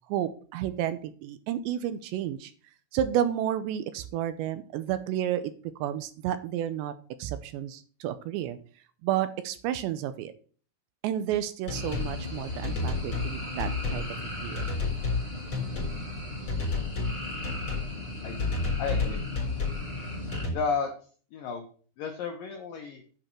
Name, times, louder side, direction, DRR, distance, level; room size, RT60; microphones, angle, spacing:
voice 1, 0.1-2.5 2.9-5.5 5.8-6.9 7.2-8.6 9.0-10.3 11.0-14.2 14.4-14.7, right 11 dB, 80° right, 12 dB, 2.8 m, -31 dB
sound 1, 11.7-12.1 12.6-13.3 13.6-14.1 14.6-15.2 15.5-16.0 16.5-17.2 17.4-17.9 18.4-19.8 20.3-20.5, left 4 dB, 30° left, 4.4 m, -30 dB
sound 2, 11.7-20.4, left 1 dB, 35° right, 0.9 m, -37 dB
voice 2, 18.8-19.2 20.5-20.9 21.3-21.6 22.0-23.0, left 5 dB, 80° left, 4 dB, 2.0 m, -32 dB
8.8 x 5.4 x 6.0 m, 0.42 s
omnidirectional pair, 5.3 m